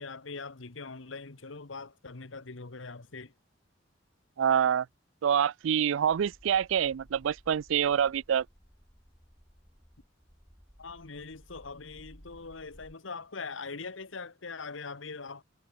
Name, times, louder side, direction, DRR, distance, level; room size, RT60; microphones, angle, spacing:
voice 1, 0.0-3.3 10.8-15.4, left 4 dB, 85° left, 1.3 m, -42 dB
voice 2, 4.4-4.9 5.2-8.4, right 8 dB, 85° right, 0.4 m, -26 dB
sound 1, 5.9-12.9, equal, ahead, 7.1 m, -57 dB
head